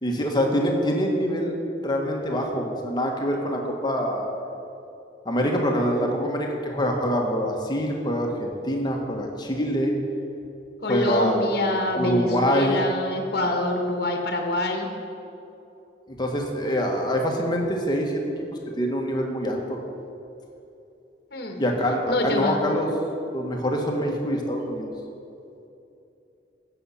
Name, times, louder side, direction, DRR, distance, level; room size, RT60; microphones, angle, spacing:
voice 1, 0.0-1.5 1.8-4.3 5.2-10.0 10.9-11.4 12.0-12.8 16.1-18.2 18.8-19.8 21.6-22.9 23.3-24.9, equal, 25° left, 1 dB, 1.5 m, -25 dB
voice 2, 10.8-14.9 21.3-21.6 22.1-22.7, left 1 dB, 60° left, 2 dB, 1.4 m, -26 dB
16.0 x 7.1 x 5.7 m, 2.8 s
head